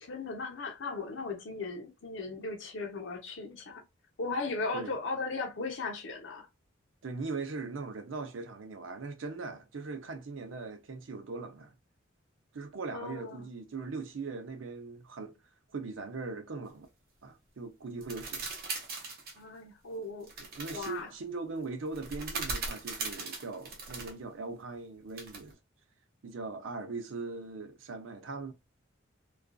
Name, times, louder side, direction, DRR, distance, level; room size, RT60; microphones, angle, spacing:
voice 1, 0.0-3.8 4.2-6.5 12.9-13.5 19.4-20.3 20.7-21.1, left 3 dB, 70° left, 0.7 m, -37 dB
voice 2, 7.0-11.7 12.5-15.3 15.7-16.9 17.2-18.5 20.4-25.6 26.2-28.5, right 3 dB, 80° right, 0.5 m, -40 dB
sound 1, 18.0-19.4 20.3-20.9 21.9-24.1 25.2-25.5, right 3 dB, 50° right, 0.7 m, -39 dB
2.4 x 2.3 x 2.2 m
head